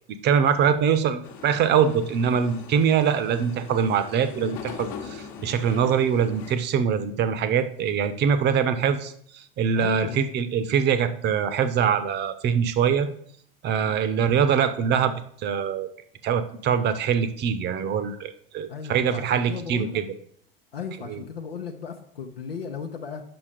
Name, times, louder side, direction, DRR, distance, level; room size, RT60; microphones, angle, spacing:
voice 1, 0.2-13.1 13.6-15.1 15.4-15.9 16.2-20.0 21.1-21.2, right 7 dB, 35° right, 11 dB, 0.8 m, -23 dB
sound 1, 1.2-6.5, left 7 dB, 50° left, 1.2 m, -41 dB
voice 2, 9.8-10.2 13.7-14.0 18.7-20.0 20.7-23.2, left 6 dB, 75° left, 3 dB, 0.8 m, -36 dB
6.1 x 5.9 x 5.1 m, 0.63 s
figure-of-eight pair, 75°, 30 cm